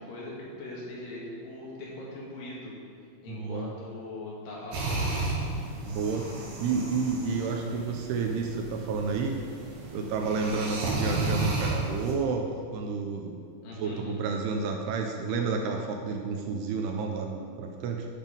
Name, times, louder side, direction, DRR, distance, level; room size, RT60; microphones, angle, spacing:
voice 1, 0.0-2.8 3.2-5.0 13.6-14.1, left 1 dB, 60° left, -5 dB, 3.2 m, -40 dB
voice 2, 3.3-3.7 5.8-9.4 9.9-12.5 12.7-13.5 13.8-18.1, right 4 dB, 80° right, 2 dB, 2.5 m, -30 dB
sound 1, 4.7-12.1, right 2 dB, 60° right, 2.9 m, -33 dB
10.5 x 5.4 x 5.2 m, 2.4 s
omnidirectional pair, 4.9 m